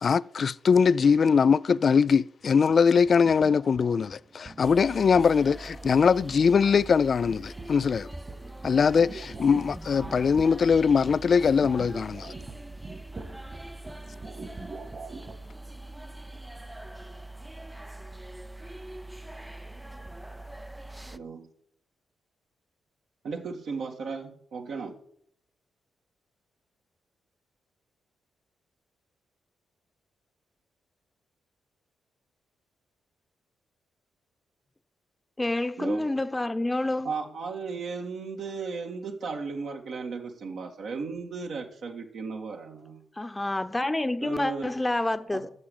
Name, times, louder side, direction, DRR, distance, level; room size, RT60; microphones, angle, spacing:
voice 1, 0.0-8.1 8.6-12.3, left 6 dB, 55° left, 0.3 m, -22 dB
sound 1, 2.4-15.5, right 3 dB, 40° right, 2.1 m, -45 dB
sound 2, 4.6-21.2, right 1 dB, 10° right, 0.5 m, -43 dB
voice 2, 21.1-21.5 23.2-24.9 35.8-36.1 37.0-43.0 44.2-44.7 45.3-45.4, right 4 dB, 70° right, 1.9 m, -35 dB
voice 3, 35.4-37.1 43.2-45.5, left 2 dB, 20° left, 1.0 m, -28 dB
9.3 x 7.3 x 7.1 m
hypercardioid pair, 40°, 0 cm